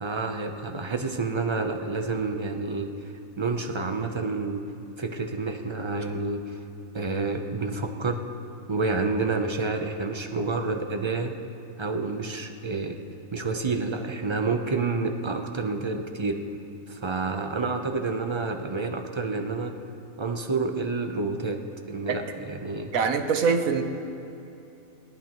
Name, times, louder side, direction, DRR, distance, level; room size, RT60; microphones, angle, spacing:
voice 1, 0.0-2.9 3.4-4.6 5.0-6.4 6.9-8.2 8.7-11.3 11.8-13.0 13.3-16.4 16.9-19.7 20.2-21.6 21.9-22.9, right 3 dB, 30° right, 4 dB, 0.5 m, -29 dB
voice 2, 22.9-23.8, right 5 dB, 70° right, 6 dB, 1.3 m, -23 dB
28.0 x 10.5 x 3.0 m, 2.8 s
omnidirectional pair, 1.5 m